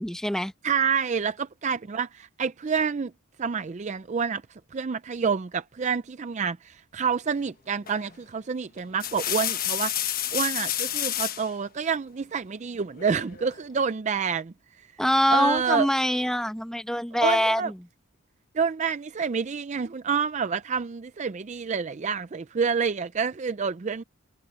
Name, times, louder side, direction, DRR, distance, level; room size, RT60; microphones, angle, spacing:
voice 1, 0.0-0.5 15.0-17.6, equal, 5° left, 1.2 m, -24 dB
voice 2, 0.6-3.1 3.4-4.4 4.7-14.5 15.3-15.9 17.2-17.7 18.5-24.0, right 6 dB, 35° right, 0.4 m, -28 dB
sound 1, 7.9-8.2 8.8-11.5 13.0-13.6, left 11 dB, 45° left, 1.1 m, -30 dB
head